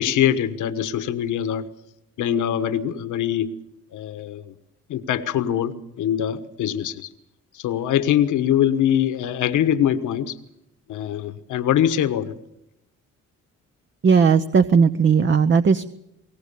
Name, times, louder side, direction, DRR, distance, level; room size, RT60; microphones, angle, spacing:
voice 1, 0.0-1.7 2.2-3.5 3.9-4.5 4.9-7.1 7.5-10.4 10.9-12.3, left 10 dB, 80° left, 10 dB, 1.4 m, -23 dB
voice 2, 14.0-15.8, right 6 dB, 40° right, 10 dB, 0.8 m, -17 dB
22.0 x 18.0 x 7.0 m, 0.85 s
cardioid pair, 90°, 30 cm